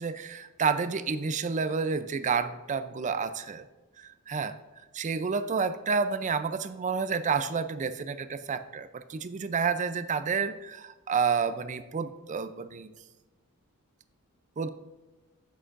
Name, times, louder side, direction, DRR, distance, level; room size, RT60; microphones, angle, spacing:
voice 1, 0.0-3.6 4.0-4.5 4.9-12.9 14.6-14.7, right 5 dB, 35° right, 12 dB, 0.4 m, -30 dB
8.3 x 7.7 x 2.5 m, 1.2 s
head